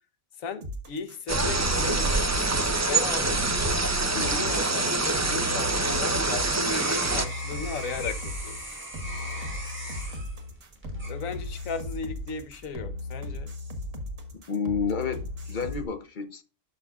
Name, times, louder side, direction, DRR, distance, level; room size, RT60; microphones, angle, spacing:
voice 1, 0.4-3.4 4.2-8.6 11.1-13.5, left 4 dB, 80° left, 1.3 m, -36 dB
sound 1, 0.6-15.8, left 2 dB, 75° right, 1.9 m, -37 dB
sound 2, 1.3-7.3, right 3 dB, 25° right, 0.4 m, -25 dB
voice 2, 4.1-4.5 14.3-16.4, left 5 dB, 45° left, 0.8 m, -31 dB
sound 3, 5.9-11.8 12.3-12.7, right 1 dB, 10° right, 3.1 m, -40 dB
11.5 x 5.9 x 2.4 m
omnidirectional pair, 1.4 m